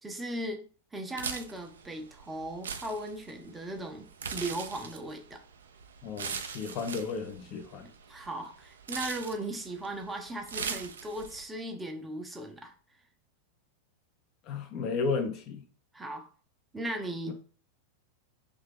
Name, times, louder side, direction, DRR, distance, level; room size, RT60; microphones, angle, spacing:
voice 1, 0.0-0.6 0.9-5.4 8.1-12.7 15.9-16.3 16.7-17.3, right 1 dB, 10° right, 0.5 m, -37 dB
sound 1, 1.1-11.4, right 6 dB, 65° right, 0.3 m, -41 dB
voice 2, 6.0-7.9 14.5-15.6 17.3-17.4, left 4 dB, 40° left, 0.5 m, -33 dB
2.7 x 2.3 x 3.4 m
figure-of-eight pair, 90°, 0 cm